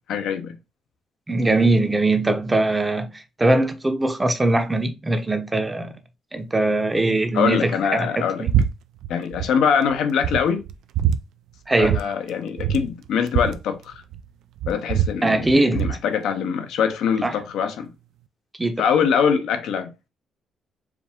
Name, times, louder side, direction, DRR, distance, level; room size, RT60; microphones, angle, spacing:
voice 1, 0.1-0.5 7.3-8.5 9.1-10.6 11.8-14.0 14.7-17.9 18.8-19.9, left 7 dB, 80° left, 0.7 m, -23 dB
voice 2, 1.3-6.0 6.3-8.5 11.7-12.0 15.2-15.8 17.2-17.3 18.6-18.8, right 2 dB, 15° right, 0.7 m, -21 dB
sound 1, 8.5-8.7 9.0-9.5 9.9-10.0 10.2-11.2 11.8-12.0 12.3-12.4 12.6-14.3 14.6-16.0, right 9 dB, 85° right, 0.3 m, -23 dB
4.7 x 2.5 x 3.5 m
cardioid pair, 90°, 0 cm